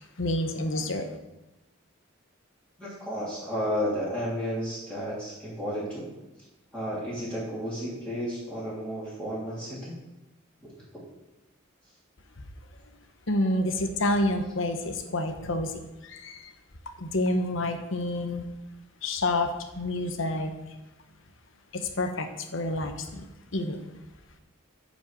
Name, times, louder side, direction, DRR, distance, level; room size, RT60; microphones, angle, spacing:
voice 1, 0.2-1.0 13.3-15.7 16.2-16.3 17.0-18.4 19.0-19.5 19.8-20.5 22.0-22.3 22.5-22.9 23.5-23.8, left 1 dB, 65° left, 6 dB, 1.1 m, -27 dB
voice 2, 2.8-6.1 6.7-10.0 10.6-10.7, equal, 5° left, -9 dB, 3.1 m, -32 dB
9.2 x 5.3 x 7.5 m, 1.0 s
head